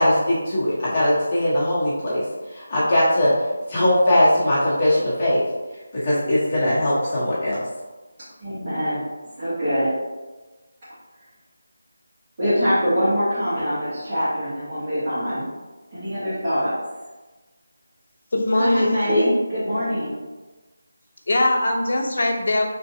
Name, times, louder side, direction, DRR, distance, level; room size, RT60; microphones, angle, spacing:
voice 1, 0.0-2.2 2.5-5.4 5.9-7.6, left 1 dB, 30° left, -9 dB, 0.9 m, -20 dB
voice 2, 8.4-9.1 9.4-10.0 12.4-15.5 15.9-16.8 18.6-20.2, equal, 35° right, -13 dB, 1.2 m, -23 dB
voice 3, 18.3-19.0 21.3-22.6, left 1 dB, 60° left, 2 dB, 0.6 m, -20 dB
3.7 x 2.7 x 2.6 m, 1.2 s
figure-of-eight pair, 170°, 0 cm